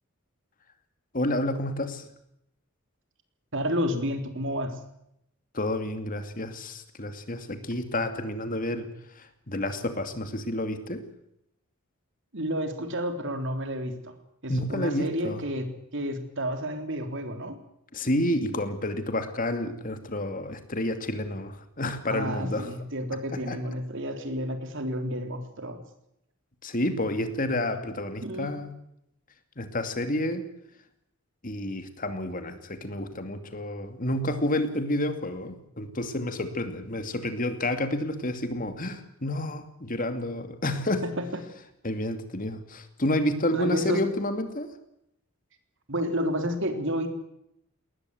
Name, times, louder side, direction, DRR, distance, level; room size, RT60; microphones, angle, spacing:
voice 1, 1.1-2.1 5.5-8.9 9.2-11.0 14.5-15.4 17.9-22.7 23.3-23.6 26.6-28.7 29.6-30.5 31.4-41.1 41.8-44.7, left 1 dB, 40° left, 8 dB, 2.5 m, -30 dB
voice 2, 3.5-4.8 12.3-14.1 14.4-15.7 15.9-17.6 22.1-25.8 28.2-28.5 41.2-41.3 43.5-44.0 45.9-47.1, equal, 60° right, 7 dB, 3.6 m, -30 dB
21.0 x 19.0 x 8.0 m, 0.78 s
head